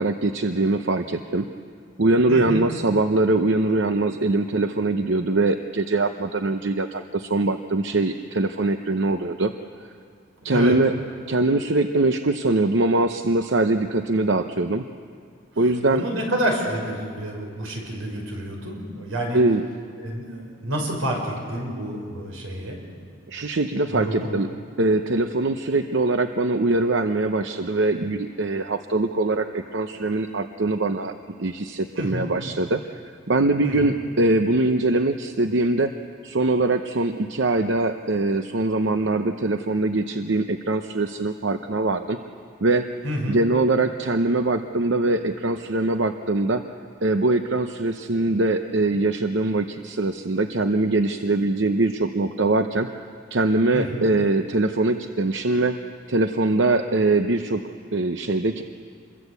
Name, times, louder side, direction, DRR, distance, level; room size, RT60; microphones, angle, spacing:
voice 1, 0.0-1.5 2.0-9.5 10.4-10.9 11.3-14.8 15.6-16.0 19.3-19.6 23.3-24.5 24.8-31.1 31.4-36.0 36.2-42.2 42.6-42.9 43.3-46.6 47.0-52.9 53.3-55.8 56.1-58.6, right 2 dB, 65° right, 7 dB, 0.8 m, -22 dB
voice 2, 2.3-2.6 10.4-10.8 15.9-19.4 20.0-22.8 23.9-24.3 32.0-32.3 33.6-33.9 43.0-43.4 53.7-54.0, equal, 85° right, 1 dB, 6.2 m, -28 dB
28.0 x 22.5 x 8.2 m, 2.2 s
head